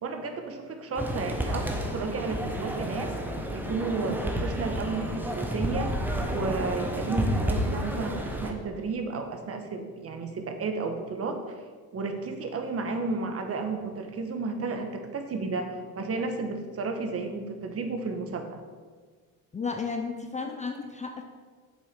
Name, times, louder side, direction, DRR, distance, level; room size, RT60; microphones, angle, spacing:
voice 1, 0.0-3.1 3.5-5.9 6.3-11.4 11.9-18.6, right 3 dB, 35° right, 5 dB, 1.2 m, -32 dB
sound 1, 1.0-8.5, equal, 5° right, 1.0 m, -30 dB
voice 2, 19.5-21.2, left 4 dB, 20° left, 4 dB, 0.6 m, -33 dB
7.4 x 7.4 x 5.2 m, 1.5 s
cardioid pair, 120°, 39 cm